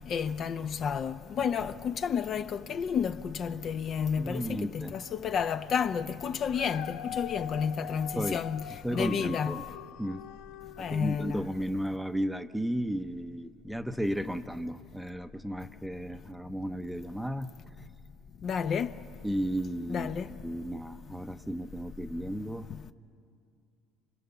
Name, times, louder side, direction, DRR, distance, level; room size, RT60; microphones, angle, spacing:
voice 1, 0.1-9.6 10.8-11.5 18.4-18.9 19.9-20.3, left 7 dB, 45° left, 0.7 m, -31 dB
voice 2, 4.2-4.9 8.2-8.4 8.8-9.6 10.0-10.2 10.9-17.5 19.2-20.1 20.4-22.7, equal, ahead, 0.8 m, -34 dB
Dog, 6.5-11.7 12.2-12.3, left 10 dB, 80° left, 0.8 m, -43 dB
29.5 x 25.0 x 7.0 m
supercardioid pair, 110°, 0 cm